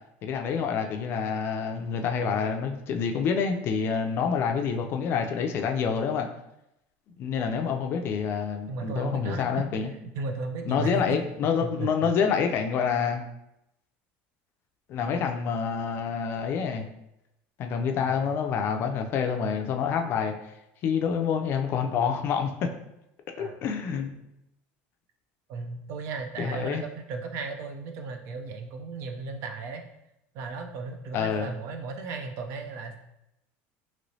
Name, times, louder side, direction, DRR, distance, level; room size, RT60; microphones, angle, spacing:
voice 1, 0.2-6.3 7.2-9.9 10.7-13.3 14.9-16.9 17.6-20.3 20.8-22.7 23.4-24.2 26.4-26.8 31.1-31.5, left 6 dB, 40° left, 5 dB, 0.4 m, -27 dB
voice 2, 8.7-9.6 10.0-11.2 11.6-12.1 18.1-18.3 23.4-23.6 25.5-29.8 30.3-33.0, right 4 dB, 55° right, 6 dB, 0.4 m, -35 dB
3.0 x 2.9 x 2.7 m, 0.84 s
cardioid pair, 145°, 6 cm